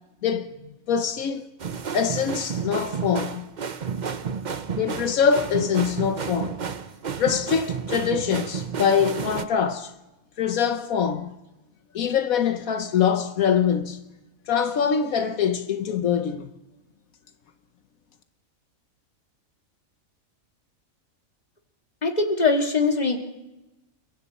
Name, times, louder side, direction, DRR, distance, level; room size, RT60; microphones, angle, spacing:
voice 1, 0.2-1.5 1.9-3.5 4.7-6.6 7.2-9.9 10.4-11.3 11.9-14.0 14.5-16.5, left 7 dB, 80° left, 1.4 m, -24 dB
sound 1, 1.6-9.5, right 6 dB, 40° right, 0.8 m, -31 dB
voice 2, 22.0-23.2, left 3 dB, 30° left, 2.3 m, -21 dB
29.0 x 23.0 x 4.2 m
omnidirectional pair, 1.4 m